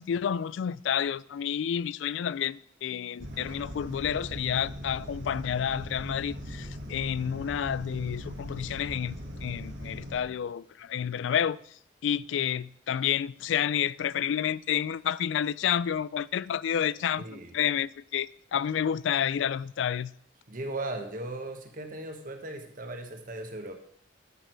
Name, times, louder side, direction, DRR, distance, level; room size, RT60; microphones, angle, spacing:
voice 1, 0.0-11.6 12.0-20.1, left 9 dB, 85° left, 0.3 m, -30 dB
sound 1, 3.2-10.2, equal, 75° right, 2.0 m, -40 dB
voice 2, 17.2-17.5 20.5-23.8, right 2 dB, 50° right, 1.4 m, -37 dB
12.5 x 6.6 x 4.6 m
head